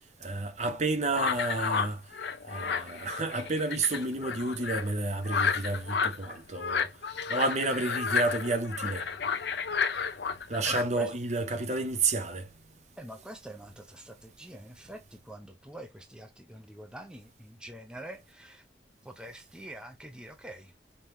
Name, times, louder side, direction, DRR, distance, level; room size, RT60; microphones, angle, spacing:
voice 1, 0.2-2.0 2.5-6.9 7.3-9.1 10.5-12.5, right 3 dB, 40° right, 0.9 m, -30 dB
sound 1, 1.1-10.8, left 6 dB, 65° left, 0.7 m, -32 dB
voice 2, 10.6-11.1 13.0-18.7 19.0-20.8, right 1 dB, 5° right, 0.6 m, -45 dB
5.4 x 2.9 x 3.2 m
head